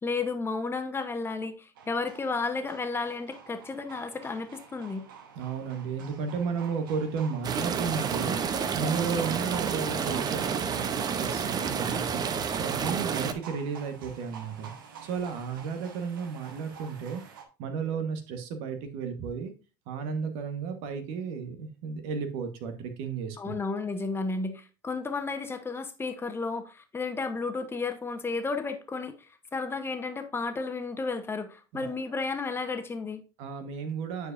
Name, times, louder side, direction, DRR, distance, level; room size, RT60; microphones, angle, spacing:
voice 1, 0.0-5.0 23.4-33.2, left 4 dB, 20° left, 8 dB, 1.0 m, -33 dB
sound 1, 1.8-17.4, right 6 dB, 90° right, 1.0 m, -47 dB
voice 2, 5.3-14.7 15.0-17.2 17.6-19.5 19.9-23.5 31.7-32.0 33.4-34.3, right 6 dB, 70° right, 7 dB, 1.2 m, -33 dB
sound 2, 7.4-13.3, right 6 dB, 35° right, 0.7 m, -30 dB
9.4 x 4.7 x 2.5 m, 0.32 s
supercardioid pair, 90°, 11 cm